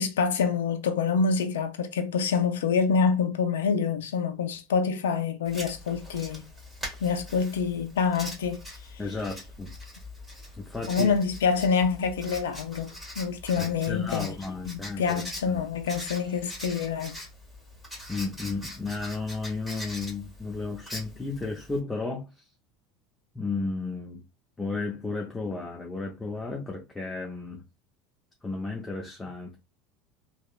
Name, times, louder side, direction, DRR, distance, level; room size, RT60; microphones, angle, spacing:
voice 1, 0.0-6.4 7.0-8.6 8.9-9.0 10.9-14.3 14.7-17.2, left 5 dB, 85° left, 0.4 m, -26 dB
Writing, 5.5-21.8, left 1 dB, 5° right, 1.5 m, -42 dB
voice 2, 9.0-9.7 10.6-11.1 13.6-15.7 18.1-22.4 23.3-24.2 24.6-27.6 28.4-29.6, left 3 dB, 15° left, 0.6 m, -33 dB
2.9 x 2.0 x 2.2 m
hypercardioid pair, 90°, 0 cm